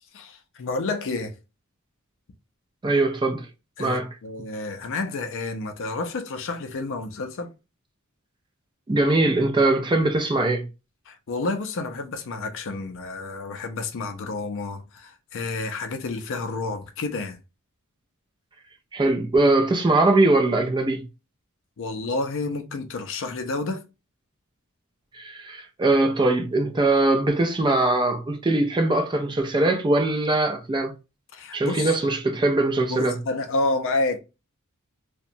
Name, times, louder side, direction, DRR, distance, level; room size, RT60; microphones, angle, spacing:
voice 1, 0.1-1.4 3.8-7.5 11.1-17.4 21.8-23.8 31.3-31.9 32.9-34.2, left 3 dB, 60° left, 0.5 m, -30 dB
voice 2, 2.8-3.5 3.8-4.1 8.9-10.7 18.9-21.1 25.1-30.9 31.5-33.2, right 2 dB, 20° right, 0.4 m, -21 dB
2.8 x 2.2 x 2.5 m
head